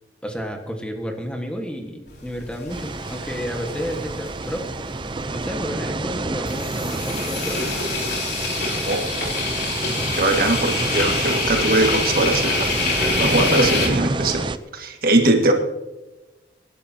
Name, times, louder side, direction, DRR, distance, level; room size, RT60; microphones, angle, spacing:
voice 1, 0.2-4.7 5.3-7.8, equal, 5° left, 2 dB, 1.5 m, -31 dB
Boiling a kettle, 2.1-13.9, left 3 dB, 60° left, 4.0 m, -26 dB
sound 1, 2.7-14.6, right 2 dB, 25° right, 0.5 m, -28 dB
voice 2, 10.2-12.7 13.2-14.4 14.7-15.5, right 2 dB, 55° right, 3 dB, 1.9 m, -20 dB
25.5 x 12.0 x 2.9 m, 1.1 s
head